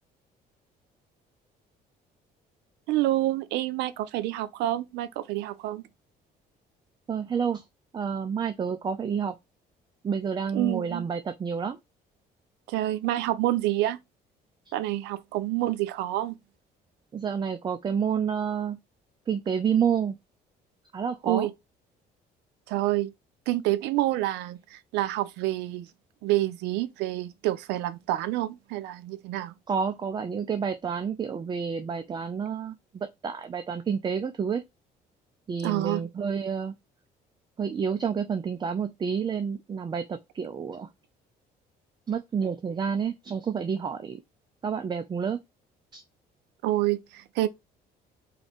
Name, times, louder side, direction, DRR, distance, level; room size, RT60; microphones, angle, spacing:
voice 1, 2.9-5.8 10.5-11.1 12.7-14.0 14.7-16.3 21.2-21.5 22.7-23.1 23.5-25.9 26.2-29.5 35.6-36.0 46.6-47.5, right 15 dB, 90° right, 0.5 m, -28 dB
voice 2, 7.1-7.6 7.9-9.3 10.0-11.8 14.7-14.8 17.1-18.8 19.3-20.2 20.9-21.5 29.7-34.6 35.5-36.7 37.6-40.9 42.1-44.2 44.6-45.4 45.9-46.0, right 6 dB, 25° right, 0.4 m, -29 dB
3.8 x 2.6 x 3.5 m
cardioid pair, 110°, 17 cm